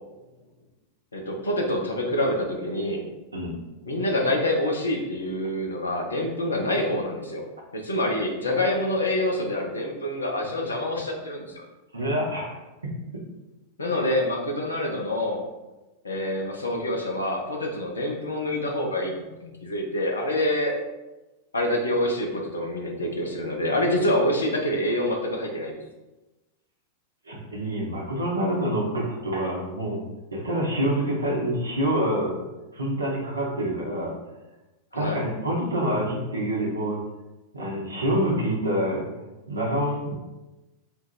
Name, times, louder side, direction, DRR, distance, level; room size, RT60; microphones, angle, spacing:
voice 1, 1.1-3.0 3.9-7.4 7.7-11.6 13.8-15.4 16.0-19.1 19.4-20.8 21.5-25.7 34.9-35.2, left 1 dB, 75° left, 1 dB, 0.7 m, -26 dB
voice 2, 11.9-13.2 27.2-30.0 30.3-34.2 34.9-37.1 37.5-39.1 39.5-40.1, right 1 dB, 75° right, -2 dB, 0.9 m, -27 dB
3.7 x 2.4 x 4.4 m, 1.1 s
figure-of-eight pair, 90°, 0 cm